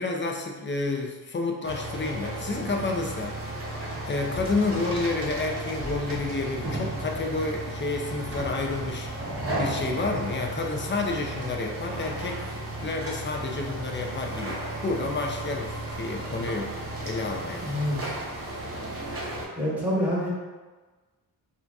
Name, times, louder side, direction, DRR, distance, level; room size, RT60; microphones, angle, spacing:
voice 1, 0.0-3.4 4.0-12.4 12.8-17.6, left 3 dB, 30° left, 2 dB, 0.4 m, -30 dB
sound 1, 1.6-19.5, right 1 dB, 35° right, 0.7 m, -34 dB
voice 2, 17.6-18.1 19.5-20.3, equal, 5° right, -8 dB, 1.3 m, -27 dB
3.7 x 2.3 x 2.3 m, 1.3 s
cardioid pair, 75°, 40 cm